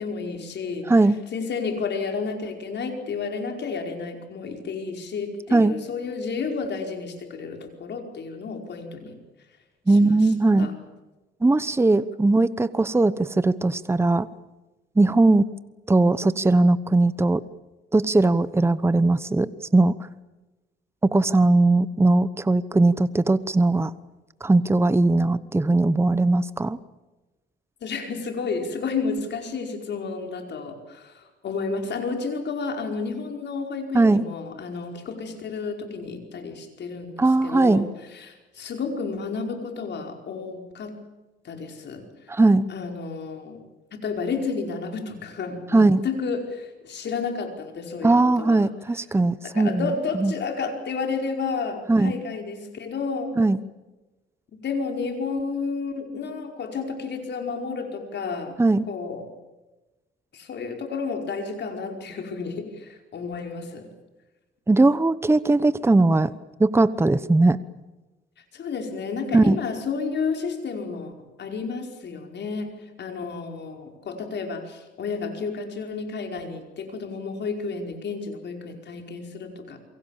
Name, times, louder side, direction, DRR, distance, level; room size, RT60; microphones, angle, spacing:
voice 1, 0.0-0.9 1.3-9.2 9.9-10.3 10.6-10.7 27.8-37.9 38.1-41.0 41.4-42.1 42.3-42.4 42.7-43.6 43.9-48.7 49.4-53.4 54.6-58.6 58.9-59.3 60.3-63.9 68.5-71.1 71.4-79.8, left 4 dB, 60° left, 4 dB, 5.1 m, -31 dB
voice 2, 9.9-10.7 11.4-14.3 15.0-15.5 15.9-17.4 17.9-19.9 21.0-23.9 24.4-26.8 33.9-34.3 37.2-37.9 42.3-42.7 45.7-46.0 48.0-49.9 50.2-50.3 51.9-52.1 53.4-53.6 58.6-58.9 64.7-66.3 66.6-67.6 69.3-69.6, right 2 dB, 10° right, 15 dB, 0.9 m, -19 dB
28.5 x 23.5 x 7.5 m, 1.1 s
cardioid pair, 90°, 20 cm